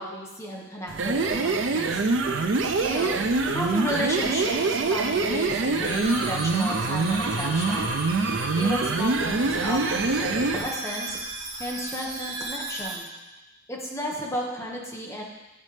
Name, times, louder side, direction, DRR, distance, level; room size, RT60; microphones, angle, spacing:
voice 1, 0.0-2.0 2.8-3.2 3.5-7.9 8.6-11.2 11.6-13.1 13.7-15.2, equal, 15° left, -2 dB, 1.2 m, -33 dB
sound 1, 0.9-10.7, right 3 dB, 85° right, 0.6 m, -25 dB
sound 2, 5.8-13.0, right 2 dB, 35° right, 2.5 m, -35 dB
11.0 x 4.2 x 3.3 m, 1.1 s
head